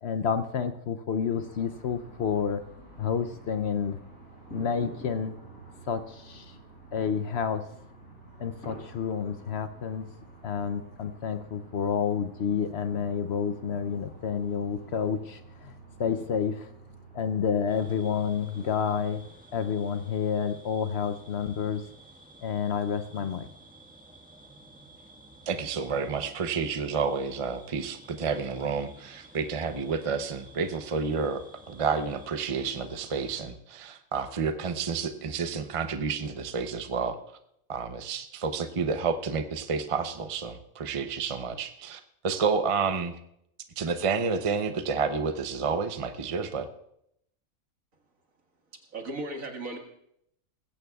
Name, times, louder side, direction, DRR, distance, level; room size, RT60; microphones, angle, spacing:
voice 1, 0.0-2.6 3.0-4.0 4.5-5.4 5.9-6.5 6.9-7.7 8.4-10.1 10.4-16.7 17.1-19.2 19.5-21.9 22.4-23.5, left 7 dB, 60° left, 10 dB, 0.8 m, -29 dB
sound 1, 1.2-19.3, right 2 dB, 85° left, 6.5 m, -49 dB
sound 2, 17.7-33.5, right 1 dB, 5° right, 1.4 m, -53 dB
voice 2, 25.5-37.2 37.7-43.1 43.8-46.7, right 5 dB, 35° right, 8 dB, 0.5 m, -30 dB
voice 3, 48.7-49.8, right 2 dB, 75° right, 3 dB, 2.2 m, -36 dB
20.5 x 16.0 x 2.3 m, 0.76 s
omnidirectional pair, 1.4 m